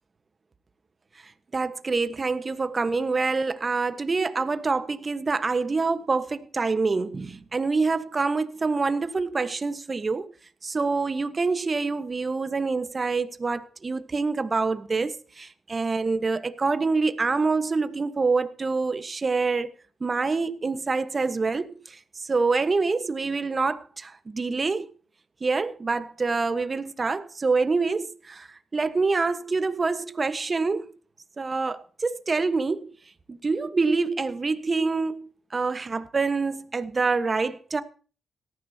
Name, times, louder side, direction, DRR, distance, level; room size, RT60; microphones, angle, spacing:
voice 1, 1.5-10.3 10.6-19.7 20.0-22.0 22.2-24.9 25.4-28.5 28.7-30.9 31.4-32.9 33.3-37.8, right 4 dB, 35° right, 1.3 m, -26 dB
18.0 x 14.0 x 2.9 m
supercardioid pair, 60°, 0 cm